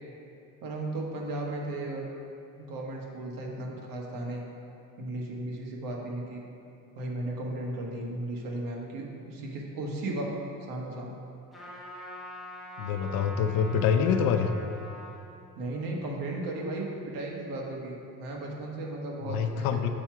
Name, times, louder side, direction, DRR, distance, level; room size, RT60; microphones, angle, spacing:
voice 1, 0.6-2.1 2.6-4.4 5.0-6.4 6.9-10.3 10.7-11.2 15.6-19.8, right 2 dB, 90° right, -1 dB, 1.4 m, -35 dB
Trumpet, 11.5-15.2, equal, ahead, 1.0 m, -43 dB
voice 2, 12.8-14.5 19.2-19.9, left 7 dB, 90° left, 6 dB, 0.6 m, -26 dB
6.9 x 5.9 x 4.5 m, 2.6 s
cardioid pair, 175°, 34 cm